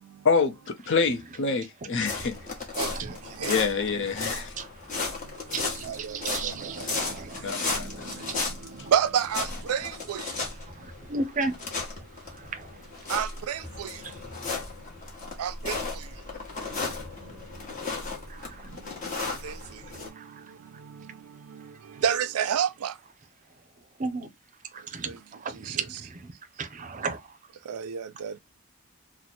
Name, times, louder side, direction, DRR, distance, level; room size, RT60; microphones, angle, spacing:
voice 1, 0.2-2.3 3.5-4.5 7.4-8.2, left 5 dB, 60° left, 0.7 m, -27 dB
sound 1, 1.9-20.1, left 3 dB, 35° left, 1.1 m, -35 dB
voice 2, 2.9-3.5 4.3-4.7 5.5-8.9 10.7-11.6 12.3-12.7 14.0-14.1 18.3-18.8 20.2-20.4 24.0-24.3 24.7-25.1 25.4-26.3 26.6-27.3, right 3 dB, 35° right, 0.5 m, -35 dB
voice 3, 5.8-7.0 7.8-7.9 8.9-10.2 13.1-13.9 15.4-15.8 19.4-19.5 22.0-22.9 25.7-25.8 27.7-28.4, right 8 dB, 90° right, 0.4 m, -29 dB
3.0 x 2.1 x 4.1 m
head